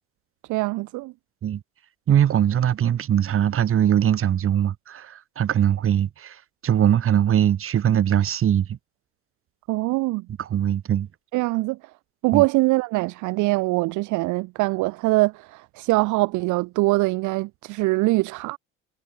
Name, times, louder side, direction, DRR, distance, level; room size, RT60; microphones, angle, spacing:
voice 1, 0.5-1.1 9.7-10.2 11.3-11.8 12.2-18.6, right 22 dB, 55° right, 0.5 m, -23 dB
voice 2, 2.1-8.8 10.4-11.1 12.3-12.4, right 10 dB, 35° right, 1.0 m, -21 dB
hypercardioid pair, 65°, 36 cm